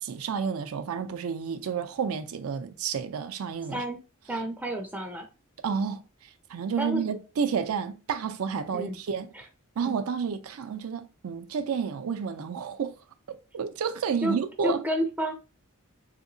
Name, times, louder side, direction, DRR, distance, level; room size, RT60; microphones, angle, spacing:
voice 1, 0.0-3.8 5.6-9.3 9.8-12.9 13.5-14.8, right 6 dB, 80° right, 0.4 m, -30 dB
voice 2, 3.7-4.0 4.3-5.3 6.8-7.0 8.7-9.0 9.3-9.4 9.8-10.0 14.2-14.4 14.6-15.3, equal, 10° right, 0.4 m, -30 dB
3.5 x 2.8 x 2.6 m
head